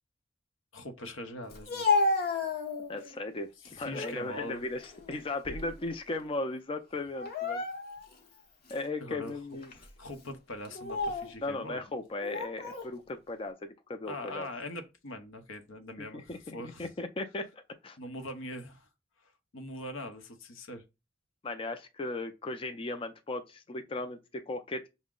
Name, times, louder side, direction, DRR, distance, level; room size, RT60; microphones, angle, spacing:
voice 1, 0.7-1.9 3.6-4.6 9.0-9.4 10.0-11.8 14.0-16.9 18.0-18.9 19.5-20.8, left 1 dB, 85° left, 0.8 m, -42 dB
Speech, 1.5-3.1 3.6-4.2 4.7-5.9 6.1-6.4 7.1-8.1 8.7-8.8 9.6-9.9 10.6-11.3 12.2-12.9, left 3 dB, 50° left, 0.9 m, -32 dB
voice 2, 2.9-7.6 8.7-9.7 11.4-13.6 13.9-14.5 16.1-18.0 21.4-24.9, left 2 dB, 25° left, 0.4 m, -37 dB
5.8 x 2.1 x 3.6 m
head